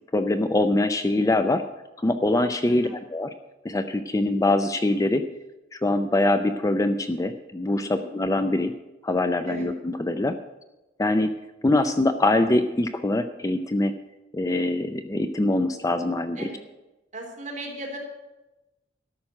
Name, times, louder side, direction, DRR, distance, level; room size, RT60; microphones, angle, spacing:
voice 1, 0.1-1.6 2.0-3.3 3.6-5.2 5.7-8.7 9.0-10.4 11.0-11.3 11.6-13.9 14.3-16.5, left 2 dB, 20° left, 9 dB, 0.5 m, -23 dB
voice 2, 7.7-8.0 9.5-9.7 16.4-16.6 17.1-18.0, right 1 dB, 45° right, -1 dB, 3.3 m, -36 dB
13.0 x 6.0 x 8.8 m, 1.0 s
head